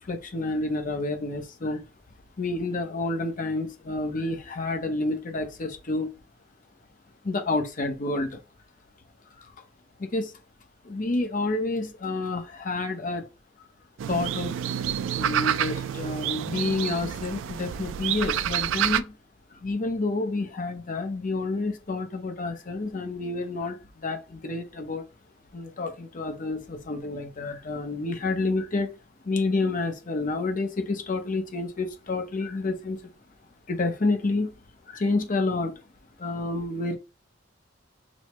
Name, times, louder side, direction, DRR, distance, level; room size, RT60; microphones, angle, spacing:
voice 1, 0.0-1.8 2.4-6.1 7.2-8.3 9.4-9.5 10.0-10.3 10.8-13.2 14.1-14.6 15.2-19.1 19.6-25.0 25.5-28.9 29.2-33.1 33.7-34.5 34.9-35.7 36.2-37.0, left 2 dB, 45° left, 0.7 m, -29 dB
sound 1, 14.0-19.0, right 10 dB, 85° right, 0.3 m, -28 dB
6.1 x 2.1 x 3.0 m
head